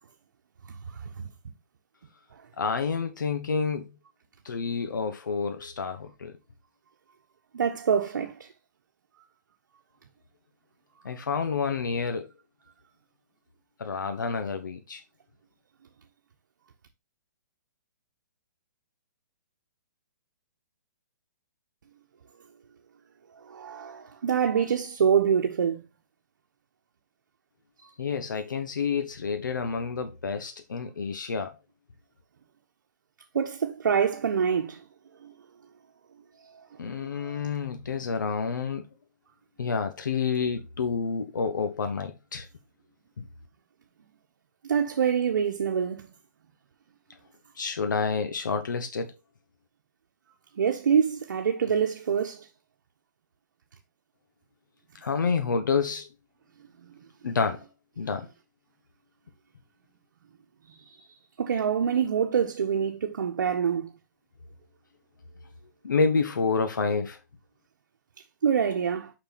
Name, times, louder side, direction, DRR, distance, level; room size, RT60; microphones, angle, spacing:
voice 1, 0.7-1.3 7.5-8.5 23.4-25.8 33.3-34.8 35.2-35.3 36.5-36.6 37.0-37.4 44.6-46.1 50.6-52.5 60.6-61.1 61.4-63.9 68.4-69.1, right 7 dB, 75° right, 1.1 m, -26 dB
voice 2, 2.6-3.9 4.4-6.3 11.0-12.3 13.8-15.0 28.0-31.5 36.8-38.8 39.6-42.5 43.2-43.3 47.6-49.1 55.0-56.1 57.2-57.6 58.0-58.3 65.8-67.2, left 5 dB, 90° left, 1.3 m, -29 dB
6.1 x 5.6 x 4.2 m
hypercardioid pair, 155°, 10 cm